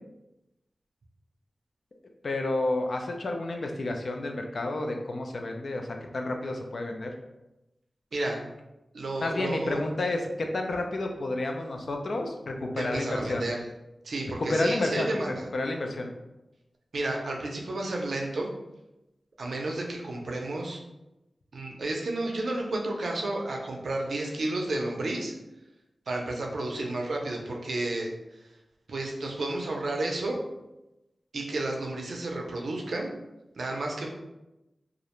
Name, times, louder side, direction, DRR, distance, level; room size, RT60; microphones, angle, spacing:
voice 1, 2.2-5.9 6.1-7.1 9.2-13.5 14.4-15.1 15.5-16.1, left 2 dB, 65° left, 3 dB, 0.3 m, -30 dB
voice 2, 8.9-9.8 12.8-13.6 14.0-15.3 16.9-18.5 19.4-20.8 21.5-25.3 26.1-28.1 28.9-30.4 31.3-33.1 33.6-34.1, right 2 dB, 80° right, 0 dB, 0.4 m, -31 dB
2.4 x 2.0 x 2.9 m, 0.96 s
wide cardioid pair, 115°, 0 cm